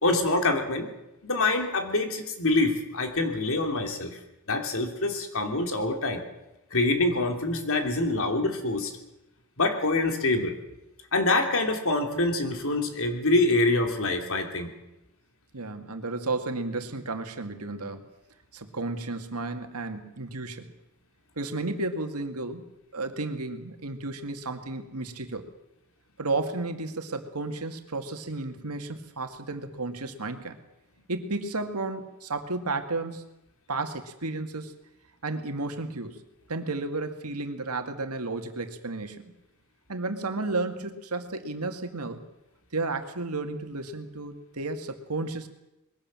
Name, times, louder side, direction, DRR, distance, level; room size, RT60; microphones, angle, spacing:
voice 1, 0.0-0.9 1.2-4.2 4.5-6.2 6.7-8.9 9.6-10.6 11.1-14.7, left 2 dB, 65° left, 5 dB, 3.0 m, -25 dB
voice 2, 15.5-18.0 18.5-20.7 21.4-22.6 22.9-25.5 26.2-30.6 31.1-33.2 33.7-34.7 35.2-36.2 36.5-39.3 39.9-42.2 42.7-45.5, right 3 dB, 90° right, 7 dB, 2.1 m, -33 dB
21.5 x 16.5 x 7.6 m, 0.94 s
head